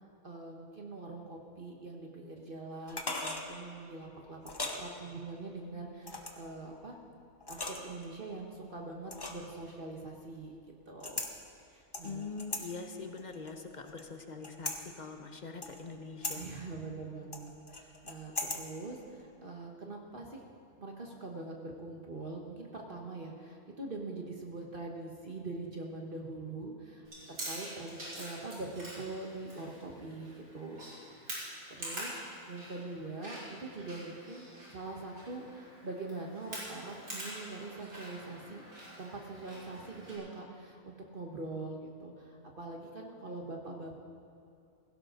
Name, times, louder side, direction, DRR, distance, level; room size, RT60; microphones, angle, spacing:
voice 1, 0.2-4.4 4.7-7.0 7.5-10.5 10.9-11.2 11.7-12.3 16.3-20.4 20.8-30.8 31.2-32.2 32.5-38.6 39.0-44.0, right 3 dB, 40° right, 0 dB, 1.3 m, -43 dB
sound 1, 2.9-3.5 4.4-4.8 6.0-6.5 7.4-8.0 9.1-9.5 11.0-11.3 11.9-12.6 13.2-14.0 14.4-14.8 15.6-15.9 16.2-16.4 17.3-18.6 18.9-19.0, left 2 dB, 20° left, 0.9 m, -38 dB
voice 2, 12.0-16.4, left 4 dB, 35° left, 5 dB, 1.0 m, -43 dB
Chewing mastication, 27.0-40.2, right 1 dB, 85° right, 4.3 m, -46 dB
16.5 x 16.5 x 3.8 m, 2.5 s
omnidirectional pair, 1.5 m